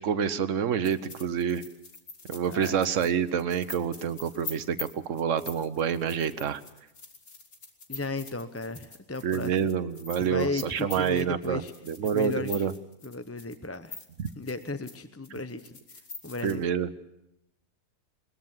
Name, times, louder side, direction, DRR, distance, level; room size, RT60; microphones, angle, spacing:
voice 1, 0.0-1.6 2.3-6.6 9.2-12.7 14.2-14.3 16.4-16.9, right 7 dB, 65° right, 11 dB, 1.3 m, -28 dB
sound 1, 0.8-15.0 15.2-16.6, left 4 dB, 85° left, 2.9 m, -44 dB
voice 2, 7.9-9.7 10.2-11.7 12.1-12.5 13.0-14.0 14.4-15.8 16.2-16.6, left 2 dB, 15° left, 10 dB, 0.6 m, -35 dB
21.5 x 20.5 x 7.3 m, 0.84 s
omnidirectional pair, 1.5 m